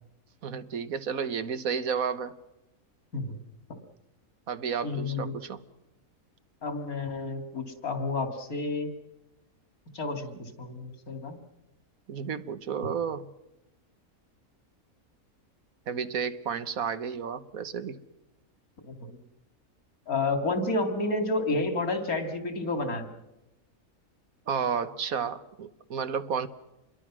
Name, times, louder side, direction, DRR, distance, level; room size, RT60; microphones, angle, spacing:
voice 1, 0.4-2.3 4.5-5.6 10.3-10.4 12.1-13.3 15.9-18.0 24.5-26.5, right 6 dB, 75° right, 12 dB, 1.6 m, -32 dB
voice 2, 4.8-5.4 6.6-8.9 9.9-11.4 18.9-19.1 20.1-23.1, left 2 dB, 90° left, 6 dB, 3.0 m, -30 dB
27.5 x 22.0 x 6.2 m, 0.95 s
omnidirectional pair, 1.5 m